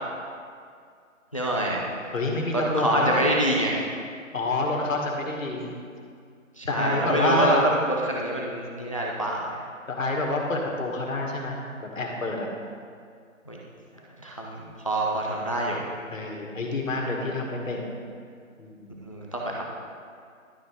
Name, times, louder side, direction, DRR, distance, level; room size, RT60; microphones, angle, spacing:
voice 1, 1.3-2.1 2.5-3.9 6.6-7.7 8.0-9.6 13.5-13.6 14.2-15.9 19.0-19.7, right 1 dB, 25° left, -2 dB, 0.5 m, -26 dB
voice 2, 2.1-3.2 4.3-5.7 6.7-7.7 9.9-11.6 11.9-12.5 16.1-17.9 18.6-19.0, left 2 dB, 75° left, -1 dB, 2.1 m, -27 dB
12.0 x 7.4 x 3.5 m, 2.2 s
figure-of-eight pair, 165°, 40 cm